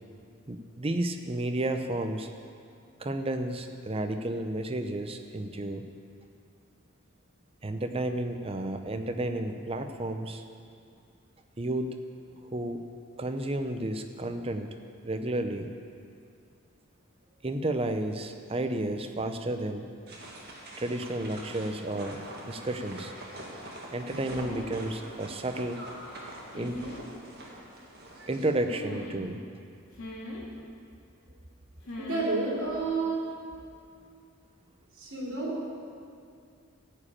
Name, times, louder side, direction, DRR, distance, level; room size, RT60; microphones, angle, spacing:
voice 1, 0.5-2.3 3.0-5.8 7.6-10.4 11.6-11.9 12.5-12.8 13.2-14.7 15.0-15.7 17.4-19.9 20.8-22.2 22.5-23.1 23.9-25.8 26.5-26.8 28.3-29.4, right 1 dB, 25° right, 7 dB, 0.6 m, -32 dB
sound 1, 20.1-28.5, right 1 dB, 45° right, 1.8 m, -44 dB
sound 2, 24.1-24.8 26.5-27.0 28.7-29.3 29.9-30.4 31.9-32.3 32.6-32.9, left 1 dB, 85° left, 2.2 m, -40 dB
voice 2, 32.0-33.3 35.0-35.6, right 3 dB, 60° right, -4 dB, 3.1 m, -30 dB
14.0 x 5.0 x 8.6 m, 2.3 s
head